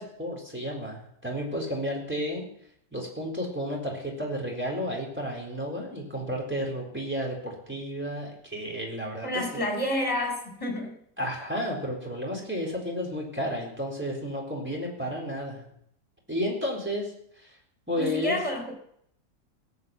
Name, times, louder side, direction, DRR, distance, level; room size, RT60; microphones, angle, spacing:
voice 1, 0.0-2.4 2.9-9.3 11.2-15.6 16.3-17.1 17.9-18.4, equal, 10° right, -2 dB, 4.1 m, -32 dB
voice 2, 9.2-10.9 17.9-18.7, left 1 dB, 25° left, 2 dB, 4.0 m, -29 dB
17.0 x 8.3 x 7.8 m, 0.72 s
omnidirectional pair, 1.3 m